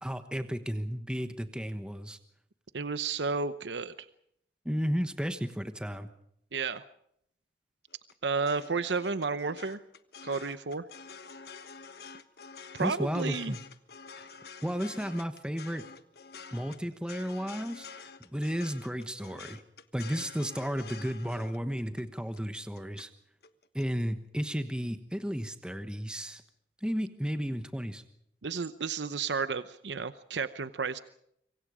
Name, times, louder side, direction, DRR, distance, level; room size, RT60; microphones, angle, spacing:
voice 1, 0.0-2.2 4.6-6.1 12.8-13.6 14.2-14.3 14.6-15.8 16.5-19.6 19.9-23.1 23.7-26.4 26.8-28.0, equal, 5° right, 9 dB, 1.2 m, -33 dB
voice 2, 2.7-3.9 6.5-6.8 8.2-9.8 10.2-10.8 12.7-13.5 28.4-31.0, right 4 dB, 85° right, 13 dB, 0.8 m, -32 dB
sound 1, 7.9-23.1 23.4-23.8, left 5 dB, 65° left, 1.3 m, -48 dB
26.0 x 24.5 x 5.0 m, 0.73 s
head